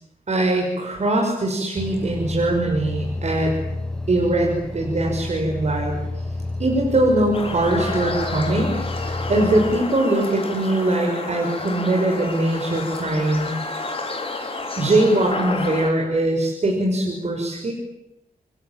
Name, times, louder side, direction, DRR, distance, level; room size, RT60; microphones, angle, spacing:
voice 1, 0.3-3.5 4.1-6.0 6.6-13.5 14.8-17.7, right 1 dB, 45° right, 0 dB, 5.7 m, -21 dB
sound 1, 1.8-9.8, left 2 dB, 5° left, 5.9 m, -30 dB
sound 2, 7.3-15.9, left 3 dB, 35° left, 4.7 m, -30 dB
27.5 x 22.5 x 9.0 m, 0.88 s
wide cardioid pair, 110°, 15 cm